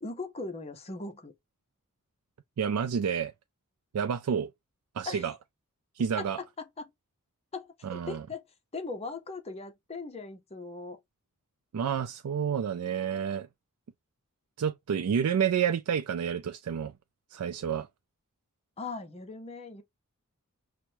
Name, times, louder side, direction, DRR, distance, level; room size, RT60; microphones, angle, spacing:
voice 1, 0.0-1.3 5.1-5.4 6.2-6.9 7.5-8.4 8.7-11.0 18.8-19.8, left 3 dB, 30° left, 0.7 m, -39 dB
voice 2, 2.6-3.3 3.9-4.5 5.0-5.3 6.0-6.4 7.8-8.2 11.7-13.5 14.6-16.9 17.3-17.9, right 7 dB, 80° right, 0.4 m, -29 dB
5.9 x 2.2 x 2.7 m
head